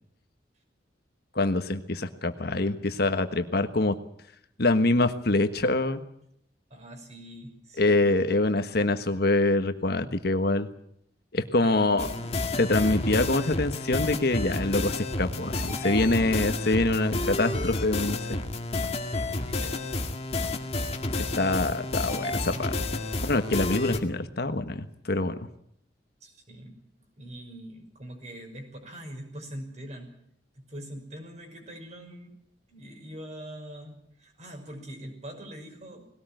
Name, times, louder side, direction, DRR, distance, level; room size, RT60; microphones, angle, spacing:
voice 1, 1.3-3.9 4.6-6.0 7.8-10.7 11.3-12.1 12.6-18.4 21.2-22.7 23.2-25.4, left 2 dB, 60° left, 9 dB, 1.4 m, -25 dB
voice 2, 6.7-8.0 11.6-12.8 19.4-19.9 23.1-23.2 26.2-26.8 27.2-30.1 30.5-32.3 32.7-36.0, right 1 dB, 40° right, 3 dB, 6.1 m, -43 dB
sound 1, 12.0-24.0, left 2 dB, 35° left, 2.1 m, -30 dB
20.5 x 18.0 x 9.2 m, 0.72 s
head